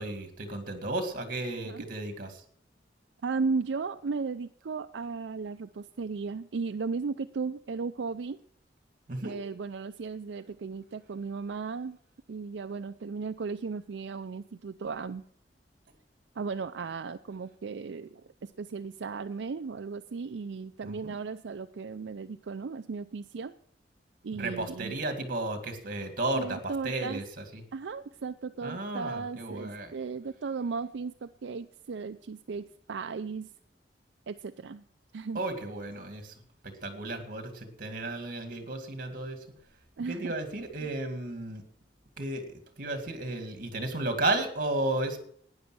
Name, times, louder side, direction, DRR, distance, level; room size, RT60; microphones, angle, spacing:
voice 1, 0.0-2.4 9.1-9.4 20.8-21.2 24.3-27.6 28.6-29.9 35.3-36.4 36.6-39.4 40.1-41.6 42.2-42.5 42.8-45.2, right 2 dB, 50° right, 7 dB, 2.1 m, -33 dB
voice 2, 3.2-8.4 9.2-12.0 12.3-15.2 16.3-23.5 24.2-25.0 26.3-27.2 27.7-33.5 34.3-34.8 35.1-35.4 40.0-40.3 40.8-40.9, right 4 dB, 80° right, 8 dB, 0.5 m, -36 dB
12.0 x 9.8 x 6.3 m, 0.63 s
head